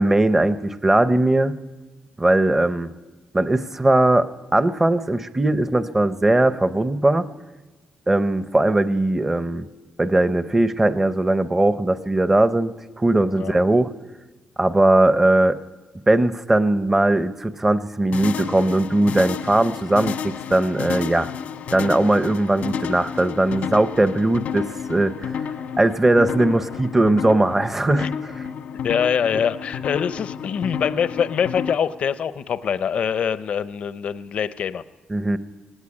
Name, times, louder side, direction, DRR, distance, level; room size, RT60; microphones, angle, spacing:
voice 1, 0.0-1.6 2.2-2.9 3.3-7.2 8.1-9.7 10.0-13.9 14.6-15.6 16.1-21.3 21.7-25.4 25.8-28.5 35.1-35.4, right 2 dB, 10° right, 12 dB, 0.6 m, -19 dB
sound 1, 18.1-31.7, left 7 dB, 85° left, 1.3 m, -31 dB
voice 2, 28.8-34.8, left 7 dB, 55° left, 13 dB, 0.6 m, -24 dB
18.5 x 17.0 x 9.7 m, 1.2 s
wide cardioid pair, 160°, 3 cm